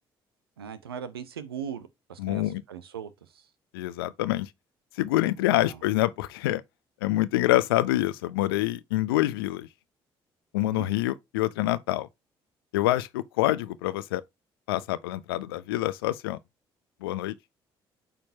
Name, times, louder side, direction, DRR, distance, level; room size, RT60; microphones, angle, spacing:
voice 1, 0.6-3.5 5.5-5.8 10.6-10.9, right 8 dB, 90° right, 0.7 m, -39 dB
voice 2, 2.2-2.6 3.7-4.5 5.0-6.6 7.0-9.7 10.5-12.1 12.7-14.2 14.7-16.4 17.0-17.3, left 16 dB, 80° left, 0.5 m, -26 dB
8.7 x 4.4 x 2.7 m
hypercardioid pair, 50°, 12 cm